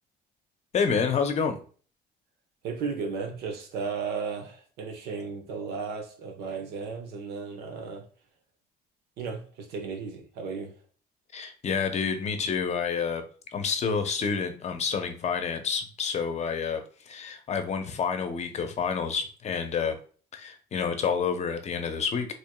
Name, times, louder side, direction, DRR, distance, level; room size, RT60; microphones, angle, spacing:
voice 1, 0.7-1.6 11.3-13.2 13.5-20.0 20.3-22.3, left 6 dB, 40° left, 7 dB, 0.7 m, -28 dB
voice 2, 2.6-8.0 9.2-10.7, right 5 dB, 75° right, 4 dB, 1.0 m, -35 dB
4.6 x 3.1 x 2.2 m, 0.41 s
cardioid pair, 110°, 17 cm